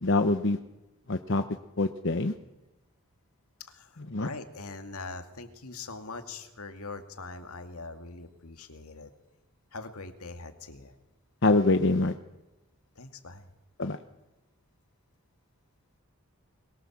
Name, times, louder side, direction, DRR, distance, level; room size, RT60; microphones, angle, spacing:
voice 1, 0.0-0.6 1.1-1.4 1.8-2.3 4.1-4.3 11.4-12.1 13.8-14.0, left 2 dB, 55° left, 8 dB, 1.0 m, -24 dB
voice 2, 3.7-9.1 9.7-11.0 13.0-13.5, left 3 dB, 80° left, 7 dB, 2.3 m, -42 dB
23.0 x 22.0 x 7.3 m, 0.99 s
head